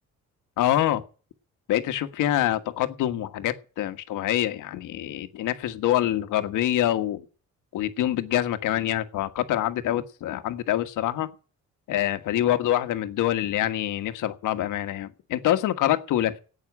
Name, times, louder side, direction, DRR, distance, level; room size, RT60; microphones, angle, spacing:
voice 1, 0.6-1.0 1.7-7.2 7.7-11.3 11.9-16.4, left 12 dB, 90° left, 10 dB, 1.5 m, -25 dB
11.0 x 8.8 x 9.8 m, 0.37 s
cardioid pair, 90°, 30 cm